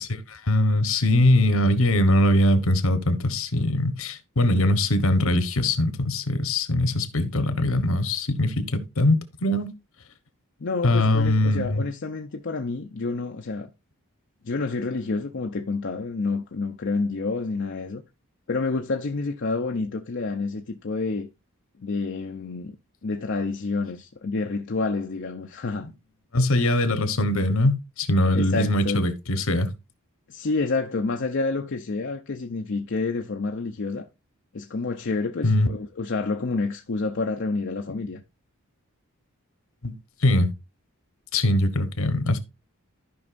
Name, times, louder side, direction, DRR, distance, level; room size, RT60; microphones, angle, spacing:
voice 1, 0.0-9.7 10.8-11.8 26.3-29.7 35.4-35.7 39.8-39.9 40.2-40.5 41.3-42.4, left 1 dB, 70° left, 1.1 m, -22 dB
voice 2, 10.6-13.7 14.4-18.0 18.5-21.3 21.8-22.8 23.0-25.9 28.3-29.0 30.3-34.1 34.5-38.2, left 3 dB, 55° left, 0.6 m, -28 dB
14.0 x 5.4 x 2.5 m
head